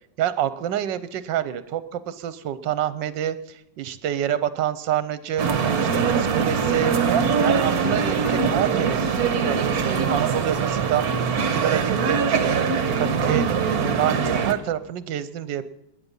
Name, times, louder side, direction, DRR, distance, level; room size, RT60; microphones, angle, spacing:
voice 1, 0.2-3.4 3.8-5.5 5.8-7.0 7.4-12.6 13.0-15.6, right 10 dB, 75° right, 14 dB, 1.5 m, -27 dB
sound 1, 5.4-14.5, right 6 dB, 55° right, 1.5 m, -22 dB
20.0 x 10.5 x 5.5 m, 0.81 s
omnidirectional pair, 2.0 m